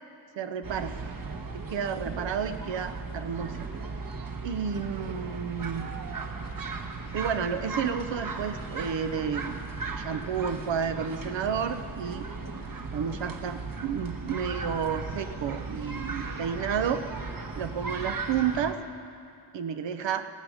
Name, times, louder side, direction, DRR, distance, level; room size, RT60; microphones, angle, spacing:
voice 1, 0.4-0.9 1.5-3.7 4.4-5.9 7.1-9.6 9.9-12.3 12.9-17.0 17.6-18.8 19.5-20.3, right 7 dB, 85° right, 9 dB, 0.9 m, -31 dB
sound 1, 0.6-18.7, right 4 dB, 50° right, 1.3 m, -37 dB
16.5 x 15.0 x 5.0 m, 2.6 s
cardioid pair, 90°, 43 cm